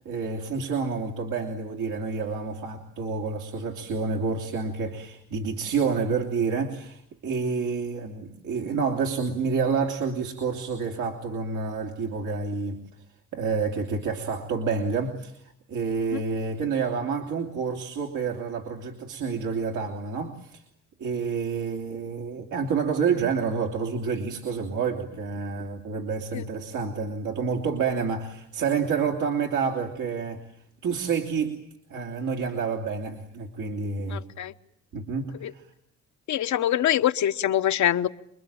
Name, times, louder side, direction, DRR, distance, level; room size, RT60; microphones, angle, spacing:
voice 1, 0.0-12.8 13.3-20.6 21.0-30.4 30.8-31.6 31.9-34.2 34.9-35.7, right 5 dB, 80° right, 1 dB, 2.9 m, -28 dB
voice 2, 34.1-34.5 35.4-35.5 36.3-38.1, left 11 dB, 70° left, 9 dB, 1.2 m, -24 dB
27.0 x 22.0 x 8.8 m, 0.73 s
cardioid pair, 90°, 30 cm